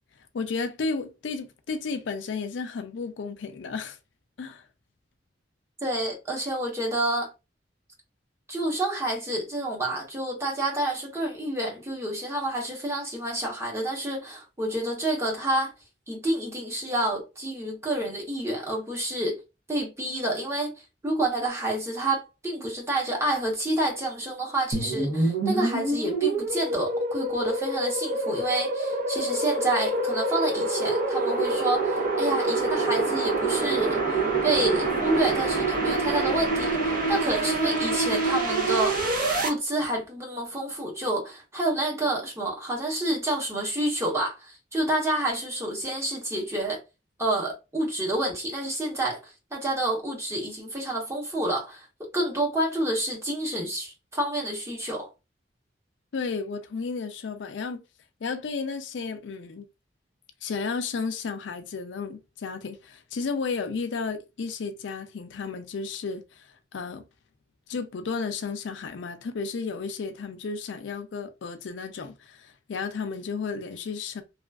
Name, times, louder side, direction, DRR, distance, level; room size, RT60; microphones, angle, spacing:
voice 1, 0.3-4.0 4.4-4.6 56.1-57.8 58.2-59.6 60.4-67.0 67.7-74.2, left 4 dB, 80° left, 0.4 m, -33 dB
voice 2, 5.8-7.3 8.5-15.7 16.1-19.4 19.7-20.7 21.0-39.1 39.4-46.8 47.2-51.9 52.1-55.1, right 1 dB, 15° right, 1.0 m, -29 dB
sound 1, 24.7-39.5, right 3 dB, 50° right, 1.0 m, -26 dB
2.9 x 2.4 x 2.3 m
head